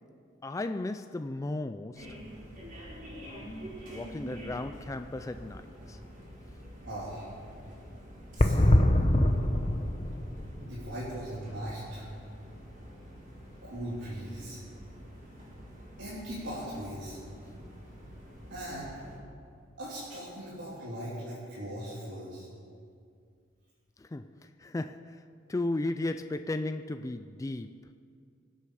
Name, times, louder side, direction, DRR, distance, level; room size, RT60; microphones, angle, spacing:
voice 1, 0.4-2.2 3.9-6.0 24.0-24.3 24.6-25.2 25.5-27.8, left 2 dB, 15° left, 0.3 m, -35 dB
sound 1, 1.9-19.2, equal, 45° right, 4.4 m, -47 dB
voice 2, 6.8-7.3 8.3-8.9 10.6-12.0 13.6-14.6 16.0-17.2 18.5-18.9 19.8-22.5, equal, 80° right, 3.4 m, -39 dB
sound 2, 8.4-12.2 12.4-12.5 12.7-12.8, left 1 dB, 30° left, 0.8 m, -25 dB
25.0 x 8.6 x 4.9 m
head